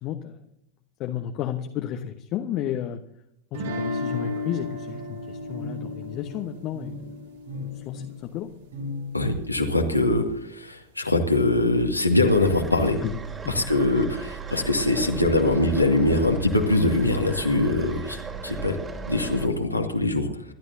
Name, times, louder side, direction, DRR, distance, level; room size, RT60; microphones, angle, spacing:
voice 1, 0.0-0.4 1.0-3.0 3.5-7.2 7.6-8.5 13.0-13.2 13.4-13.6, left 10 dB, 40° left, 5 dB, 1.1 m, -32 dB
sound 1, 3.5-8.5, left 2 dB, 60° right, 3.0 m, -34 dB
sound 2, 4.7-9.9, left 2 dB, 75° right, 6.6 m, -39 dB
voice 2, 9.1-13.0 13.5-18.2 18.4-18.8 19.0-20.5, left 2 dB, 85° left, 2 dB, 2.1 m, -22 dB
sound 3, 12.3-19.5, right 5 dB, 20° right, 2.8 m, -37 dB
27.0 x 12.5 x 2.8 m, 0.75 s
figure-of-eight pair, 90°, 0 cm